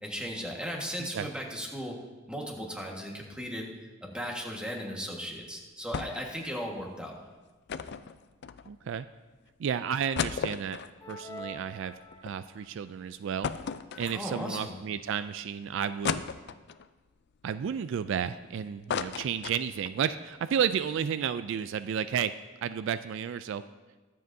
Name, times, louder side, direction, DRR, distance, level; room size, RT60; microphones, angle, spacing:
voice 1, 0.0-1.9 2.3-3.7 4.0-7.2 14.1-14.7, equal, 5° right, -1 dB, 1.5 m, -36 dB
sound 1, 5.9-6.4 6.6-6.7 7.7-9.0 9.5-9.6 9.9-12.3 12.7-12.8 13.4-14.6 15.1-15.2 16.0-16.9 17.4-18.4 18.7-20.0 20.4-20.5 20.7-20.9, left 6 dB, 60° left, 0.4 m, -35 dB
voice 2, 8.7-9.1 9.6-10.8 11.1-11.9 12.2-13.5 14.0-16.2 17.4-22.3 22.6-23.6, right 8 dB, 65° right, 13 dB, 0.3 m, -32 dB
sound 2, 11.0-12.7, equal, 15° left, 1.1 m, -45 dB
22.0 x 7.6 x 2.7 m, 1.2 s
head